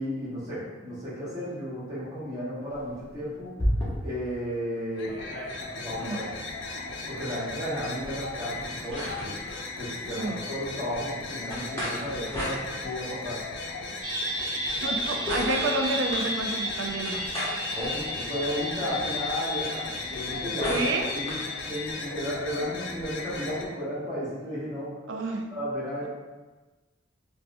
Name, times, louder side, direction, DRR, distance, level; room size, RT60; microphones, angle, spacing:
voice 1, 0.0-3.5 4.0-5.1 5.7-6.3 7.1-9.3 9.8-13.4 17.7-21.4 21.7-24.9 25.5-26.1, equal, 20° right, -10 dB, 1.1 m, -33 dB
sound 1, 2.7-4.3 4.7-4.8 5.0-6.1 7.7-9.6 11.5-13.2 14.5-16.3 17.0-18.5 19.9-21.5, equal, 15° left, 0.8 m, -35 dB
sound 2, 4.9-23.6, left 3 dB, 75° left, 0.4 m, -37 dB
voice 2, 10.1-10.4 14.8-17.3 20.7-21.1 25.1-25.5, right 2 dB, 85° right, 3 dB, 0.4 m, -29 dB
sound 3, 14.0-21.9, equal, 5° right, 1.2 m, -33 dB
4.1 x 2.2 x 2.5 m, 1.2 s
head